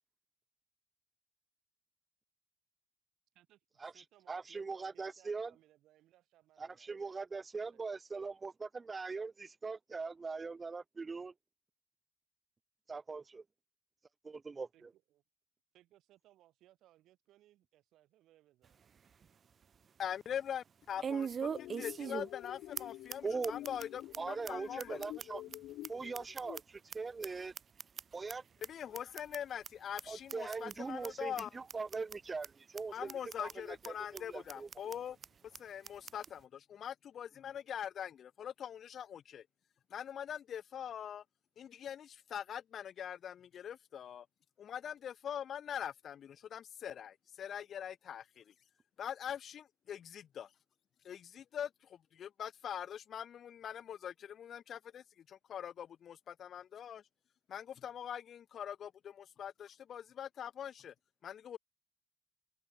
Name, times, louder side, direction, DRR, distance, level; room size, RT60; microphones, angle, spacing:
voice 1, 3.4-6.9 7.7-7.8 14.7-15.2 15.7-19.0 19.8-19.9, right 14 dB, 85° right, 7.4 m, -67 dB
voice 2, 4.3-5.5 6.6-11.3 12.9-13.4 14.2-14.9 23.2-23.5 24.2-25.4 25.9-27.5 28.1-28.4 30.1-33.1 33.4-34.7, right 4 dB, 30° right, 1.2 m, -41 dB
sound 1, 18.6-18.7 19.2-19.3 21.0-22.5 22.8-22.9 23.1-23.2 23.4-23.8 24.1-24.2 24.5-24.6 24.8-27.0 27.2-28.3 28.6-28.7 28.9-29.4 29.6-29.7 30.0-30.1 30.3-30.7 31.0-31.1 31.4-31.5 31.7-32.2 32.4-32.5 32.8-32.9 33.1-33.5 33.8-33.9 34.2-34.3 34.5-35.0 35.2-35.3 35.5-35.6 35.8-36.3, right 6 dB, 50° right, 0.4 m, -40 dB
voice 3, 20.0-21.3 21.8-25.0 28.7-31.5 32.9-35.2 35.6-39.4 39.9-41.2 41.6-44.3 44.6-48.4 49.0-50.5 51.0-57.0 57.5-60.9 61.2-61.6, left 9 dB, 65° left, 1.3 m, -43 dB
sound 2, 21.4-26.6, left 15 dB, 90° left, 1.0 m, -48 dB
open air
cardioid pair, 90°, 0 cm